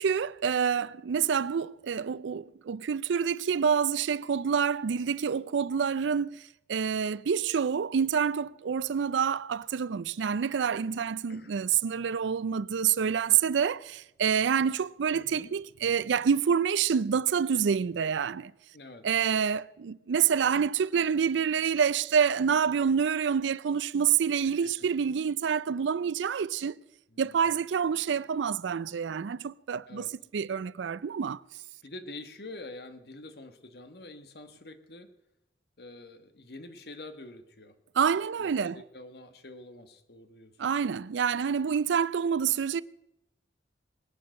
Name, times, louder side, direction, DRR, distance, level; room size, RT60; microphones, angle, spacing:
voice 1, 0.0-6.4 6.7-18.5 19.0-26.8 27.2-31.4 38.0-38.8 40.6-42.8, right 7 dB, 90° right, 0.4 m, -27 dB
voice 2, 11.0-11.6 15.1-15.5 18.7-19.1 24.4-24.9 27.1-27.4 29.9-30.1 31.8-35.1 35.8-37.7 38.4-40.6, left 2 dB, 60° left, 1.4 m, -46 dB
21.0 x 8.9 x 6.4 m
head